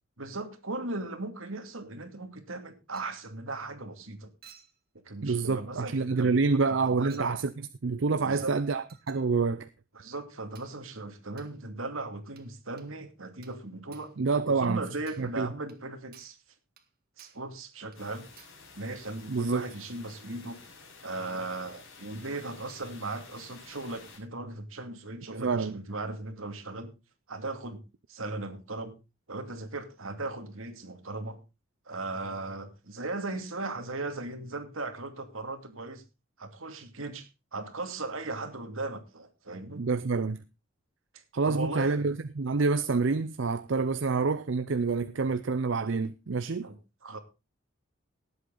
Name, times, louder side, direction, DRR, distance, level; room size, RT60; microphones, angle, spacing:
voice 1, 0.2-4.3 5.0-6.5 7.0-7.4 8.2-8.6 9.9-14.1 14.4-16.4 17.2-18.3 18.7-20.6 21.0-26.9 27.3-27.8 28.1-28.9 29.3-31.4 31.9-36.0 36.4-39.8 41.1-42.1 46.6-46.8 47.0-47.2, right 2 dB, 85° right, 2.5 m, -37 dB
Chink clink, 2.9-3.2 4.4-4.8 5.8-6.0 7.1-7.4 8.9-9.3 10.5-10.8 11.4-11.6 12.4-12.5 12.8-12.9 13.4-13.6 13.9-14.2 14.6-14.8 15.1-15.3 15.7-15.8 16.1-16.4 16.8-16.9 17.2-17.5 17.9-18.0 18.4-18.6, right 8 dB, 45° right, 1.9 m, -56 dB
voice 2, 5.2-7.5 7.8-9.7 14.2-14.8 15.2-15.5 19.3-19.7 25.3-25.8 39.8-40.4 41.3-46.7, right 4 dB, 65° right, 0.6 m, -27 dB
sound 1, 17.9-24.2, left 4 dB, 75° left, 6.1 m, -52 dB
18.0 x 8.0 x 3.9 m
head